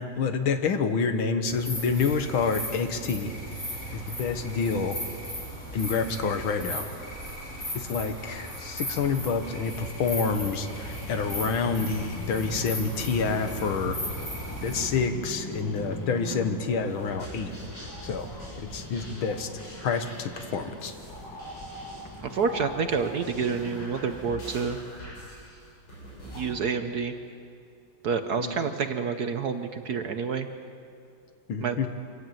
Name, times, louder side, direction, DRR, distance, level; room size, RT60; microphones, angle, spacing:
voice 1, 0.0-3.3 3.9-5.0 5.7-6.8 7.7-14.0 14.6-17.5 18.0-18.3 18.6-19.5 19.8-20.9 28.4-28.5 31.5-31.9, left 5 dB, 70° left, 8 dB, 2.0 m, -28 dB
sound 1, 1.5-14.8, equal, 30° left, 7.5 m, -37 dB
sound 2, 9.0-24.4, left 1 dB, 15° left, 0.8 m, -41 dB
sound 3, 16.9-26.5, right 1 dB, 85° left, 8.2 m, -43 dB
voice 2, 22.3-24.8 26.3-27.1 28.0-30.5 31.6-31.9, right 5 dB, 55° right, 8 dB, 1.2 m, -28 dB
25.5 x 15.5 x 9.1 m, 2.5 s
omnidirectional pair, 2.3 m